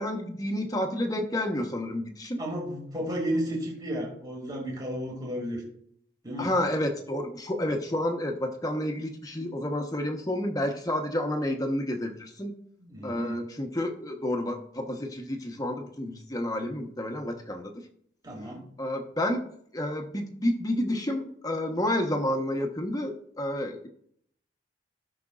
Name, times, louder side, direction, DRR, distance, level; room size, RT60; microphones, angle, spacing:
voice 1, 0.0-2.4 6.4-12.5 13.0-17.7 18.8-19.4 19.7-23.8, left 1 dB, 20° left, 3 dB, 1.0 m, -30 dB
voice 2, 2.4-5.6 6.2-6.5 12.8-13.4 18.2-18.6, equal, 20° right, -2 dB, 2.3 m, -33 dB
16.0 x 6.0 x 2.4 m, 0.65 s
head